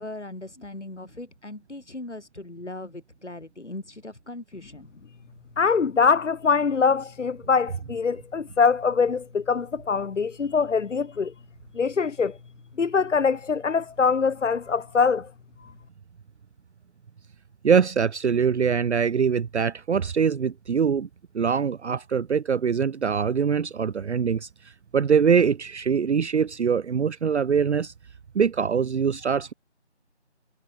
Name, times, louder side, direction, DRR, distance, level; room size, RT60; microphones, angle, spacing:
voice 1, 0.0-4.9, left 2 dB, 70° left, 7.6 m, -39 dB
voice 2, 5.6-11.3 11.7-12.4 12.8-15.3, left 5 dB, 90° left, 0.7 m, -23 dB
voice 3, 17.6-21.1 21.3-24.5 24.9-27.9 28.3-29.5, right 6 dB, 70° right, 0.5 m, -23 dB
figure-of-eight pair, 175°, 36 cm